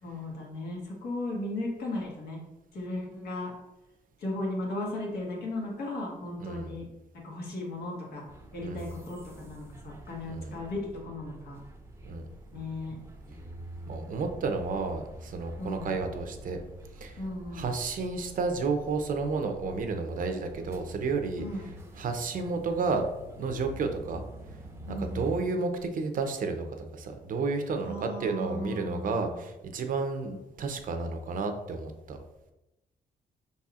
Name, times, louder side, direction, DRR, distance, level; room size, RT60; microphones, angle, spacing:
voice 1, 0.0-2.4 2.7-3.5 4.2-6.9 7.2-8.2 8.5-11.6 12.5-13.0 15.6-15.9 17.2-17.7 21.4-21.7 24.9-25.6 27.8-29.4, left 1 dB, 80° left, -2 dB, 1.6 m, -36 dB
voice 2, 6.4-6.8 8.6-8.9 10.3-10.6 12.0-12.3 13.9-16.6 17.0-17.2 17.5-21.4 22.0-23.1 23.4-24.2 25.0-32.2, right 4 dB, 55° right, 6 dB, 0.6 m, -31 dB
sound 1, 8.3-25.4, right 1 dB, 15° right, 0.6 m, -46 dB
5.2 x 4.2 x 2.4 m, 0.97 s
cardioid pair, 110°, 16 cm